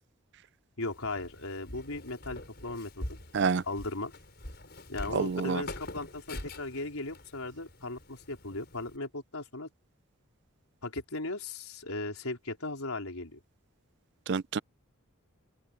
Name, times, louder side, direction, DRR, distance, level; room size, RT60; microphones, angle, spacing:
voice 1, 0.8-3.0 3.6-4.1 4.9-9.7 10.8-13.4, left 2 dB, 85° left, 4.2 m, -37 dB
Walk footsteps, 0.8-9.0, left 1 dB, 50° left, 5.9 m, -45 dB
voice 2, 5.1-5.6 14.3-14.6, right 5 dB, 50° right, 0.4 m, -28 dB
open air
head